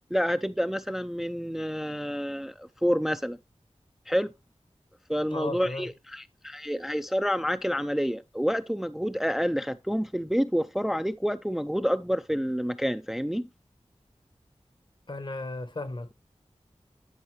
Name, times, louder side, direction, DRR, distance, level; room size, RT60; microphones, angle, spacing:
voice 1, 0.1-3.4 4.1-4.3 5.1-13.4, equal, 5° right, 0.4 m, -28 dB
voice 2, 5.3-5.9 15.1-16.1, left 2 dB, 45° left, 0.9 m, -35 dB
11.0 x 4.7 x 3.1 m
wide cardioid pair, 65°, 12 cm